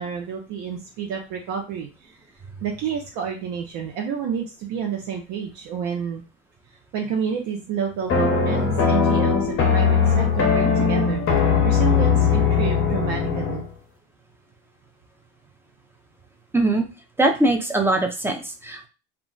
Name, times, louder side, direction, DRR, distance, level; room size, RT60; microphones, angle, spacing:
voice 1, 0.0-2.1 2.6-6.2 6.9-11.2 11.6-13.6, right 7 dB, 55° right, 1 dB, 0.7 m, -29 dB
sound 1, 8.1-13.7, left 6 dB, 40° left, 0.7 m, -20 dB
voice 2, 16.5-16.8 17.2-18.9, right 2 dB, 5° right, 4 dB, 0.4 m, -21 dB
2.3 x 2.0 x 3.8 m, 0.31 s
supercardioid pair, 110°, 34 cm